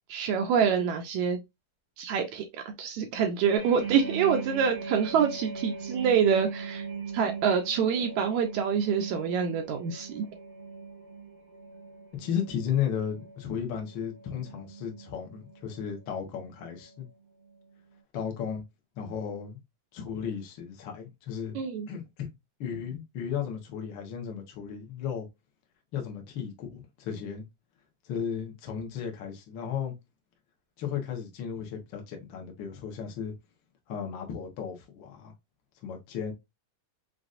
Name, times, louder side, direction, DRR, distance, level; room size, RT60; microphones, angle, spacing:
voice 1, 0.1-1.4 2.0-6.8 7.1-10.2 21.5-21.9, right 7 dB, 80° right, 1.7 m, -26 dB
sound 1, 3.6-17.1 17.4-17.7, right 5 dB, 30° right, 1.5 m, -41 dB
voice 2, 12.2-17.1 18.1-18.6 19.0-19.6 19.9-22.3 22.6-25.3 25.9-27.4 28.0-29.9 30.8-33.3 33.9-35.3 35.8-36.3, left 8 dB, 85° left, 1.0 m, -34 dB
5.9 x 2.5 x 2.5 m
omnidirectional pair, 3.9 m